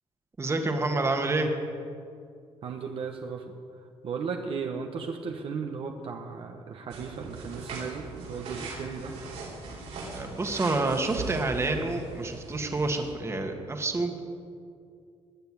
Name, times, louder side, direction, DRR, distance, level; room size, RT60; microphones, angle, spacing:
voice 1, 0.4-1.5 10.1-14.2, right 2 dB, 25° right, 4 dB, 1.7 m, -28 dB
voice 2, 2.6-3.5 4.0-9.1, right 5 dB, 55° right, 3 dB, 1.3 m, -35 dB
sound 1, 6.9-13.1, right 3 dB, 80° right, 4.9 m, -40 dB
19.5 x 6.9 x 9.7 m, 2.4 s
cardioid pair, 120°, 11 cm